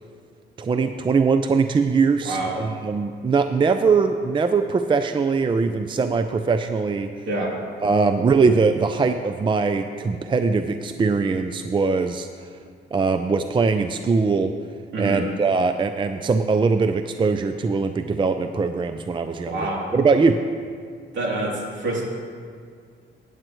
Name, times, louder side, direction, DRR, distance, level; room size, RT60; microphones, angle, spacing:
voice 1, 0.6-7.1 7.8-12.3 12.9-14.5 15.0-20.4, right 4 dB, 25° right, 8 dB, 0.4 m, -21 dB
voice 2, 14.9-15.2 19.5-19.8 21.1-22.0, right 2 dB, 65° right, -4 dB, 3.2 m, -26 dB
16.0 x 9.0 x 3.1 m, 2.1 s
cardioid pair, 90°, 20 cm